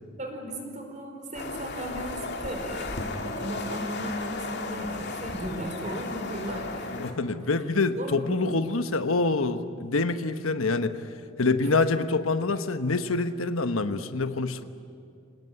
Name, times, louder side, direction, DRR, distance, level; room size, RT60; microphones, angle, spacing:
voice 1, 0.2-6.9 7.9-8.6 11.6-11.7, equal, 35° right, 3 dB, 4.9 m, -36 dB
sound 1, 1.3-7.1, left 3 dB, 55° left, 2.5 m, -35 dB
voice 2, 6.9-11.0 11.4-14.6, left 3 dB, 85° left, 9 dB, 1.2 m, -26 dB
27.0 x 19.0 x 9.6 m, 2.5 s
head